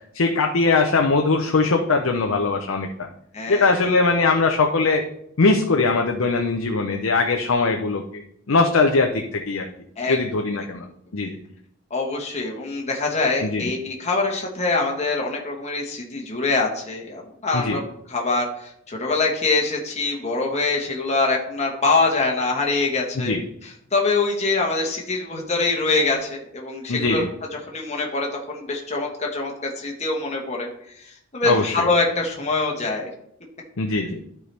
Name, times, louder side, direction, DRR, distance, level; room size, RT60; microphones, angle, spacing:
voice 1, 0.1-3.1 3.5-5.0 5.4-8.2 8.5-9.7 10.1-10.9 11.1-11.4 13.4-13.6 17.5-17.8 23.2-23.4 26.9-27.3 31.4-31.9 33.8-34.2, left 3 dB, 75° left, 3 dB, 0.7 m, -21 dB
voice 2, 3.3-3.7 10.0-10.2 11.9-17.8 18.1-23.3 23.6-27.2 27.7-33.1, left 3 dB, 35° left, 0 dB, 1.2 m, -24 dB
12.0 x 4.7 x 3.4 m, 0.73 s
head